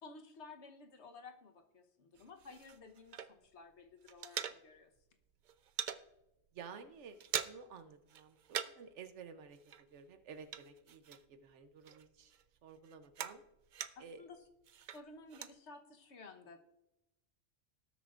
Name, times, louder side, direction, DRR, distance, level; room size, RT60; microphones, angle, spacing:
voice 1, 0.0-4.9 13.9-14.5 14.9-16.6, left 3 dB, 75° left, 6 dB, 1.3 m, -54 dB
sound 1, 2.1-3.6 3.9-5.0 5.3-6.0 6.5-6.6 6.9-7.8 8.1-8.9 9.2-11.5 11.8-14.2 14.6-15.6, right 9 dB, 55° right, 0.6 m, -43 dB
voice 2, 6.5-12.4 12.6-13.4 14.0-14.2, right 6 dB, 85° right, 9 dB, 1.1 m, -53 dB
18.5 x 8.2 x 2.5 m, 0.89 s
omnidirectional pair, 1.2 m